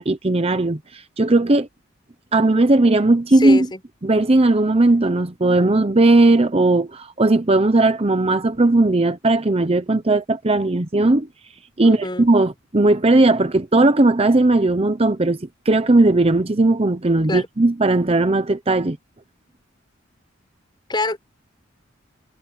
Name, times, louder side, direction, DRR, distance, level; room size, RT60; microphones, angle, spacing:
voice 1, 0.0-1.7 2.3-3.7 4.0-11.3 11.8-19.0, right 2 dB, 30° right, 0.9 m, -17 dB
voice 2, 3.4-3.8 11.8-12.3 17.3-17.5 20.9-21.2, left 2 dB, 25° left, 5.4 m, -25 dB
head